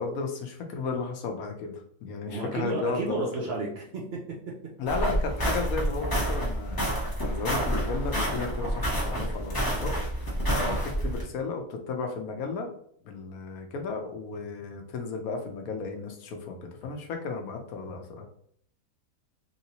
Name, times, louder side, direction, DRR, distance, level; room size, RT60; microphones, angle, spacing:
voice 1, 0.0-3.5 4.8-12.7 13.0-18.3, left 4 dB, 70° left, 3 dB, 1.1 m, -34 dB
voice 2, 2.2-4.2, right 3 dB, 65° right, -1 dB, 0.6 m, -32 dB
sound 1, 4.9-11.2, right 1 dB, 30° left, 0.4 m, -28 dB
3.3 x 2.8 x 2.8 m, 0.65 s
omnidirectional pair, 1.6 m